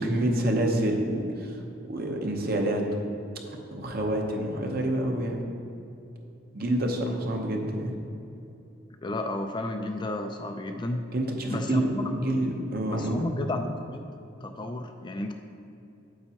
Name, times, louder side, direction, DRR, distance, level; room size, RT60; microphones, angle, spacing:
voice 1, 0.0-1.6 1.9-2.8 3.5-5.4 6.5-7.9 11.1-13.2, right 1 dB, 50° right, 2 dB, 0.8 m, -27 dB
voice 2, 9.0-11.0 11.5-12.5 12.9-14.0 14.4-15.3, left 2 dB, 25° left, 5 dB, 0.3 m, -32 dB
8.8 x 7.8 x 2.9 m, 2.7 s
head